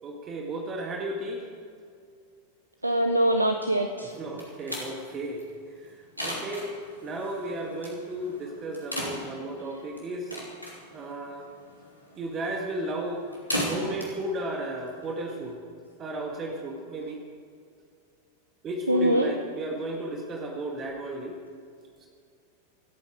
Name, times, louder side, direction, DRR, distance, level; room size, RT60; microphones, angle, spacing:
voice 1, 0.0-1.5 4.2-6.8 7.0-10.4 10.9-11.5 12.2-13.3 13.6-15.6 16.0-17.2 18.6-21.4 22.0-22.1, right 1 dB, 25° right, 1 dB, 2.0 m, -34 dB
voice 2, 2.8-4.2 18.9-19.3, right 1 dB, 85° right, 5 dB, 0.8 m, -23 dB
sound 1, 4.1-15.5, equal, 90° left, 3.1 m, -38 dB
26.5 x 8.9 x 5.0 m, 2.3 s
figure-of-eight pair, 90°, 0 cm